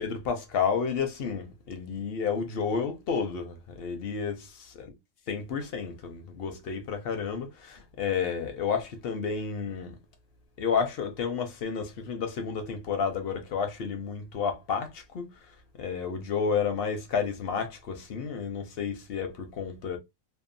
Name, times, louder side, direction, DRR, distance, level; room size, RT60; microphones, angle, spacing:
voice 1, 0.0-4.9 5.3-10.0 10.6-15.3 15.8-20.0, left 6 dB, 60° left, 0.7 m, -31 dB
2.7 x 2.1 x 2.6 m
omnidirectional pair, 1.5 m